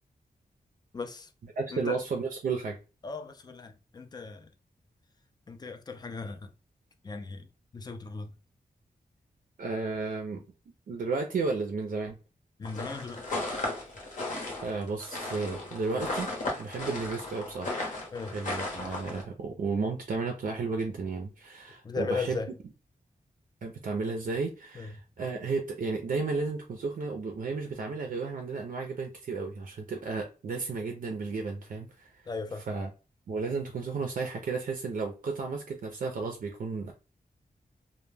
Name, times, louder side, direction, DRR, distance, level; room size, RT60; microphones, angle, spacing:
voice 1, 0.9-1.3 1.7-2.0 3.0-4.5 5.5-6.5 7.0-7.5 7.7-8.3 12.6-13.2 18.1-18.4 21.8-22.5 24.8-24.9 32.3-32.6, left 4 dB, 25° left, 0.3 m, -37 dB
voice 2, 1.6-2.8 9.6-12.2 14.6-16.3 16.6-17.8 18.3-22.4 23.6-32.2 32.7-32.9 33.3-36.9, right 4 dB, 60° right, 0.4 m, -33 dB
sound 1, 12.7-19.2, left 2 dB, 55° left, 0.9 m, -35 dB
2.1 x 2.1 x 3.2 m
wide cardioid pair, 140°, 16 cm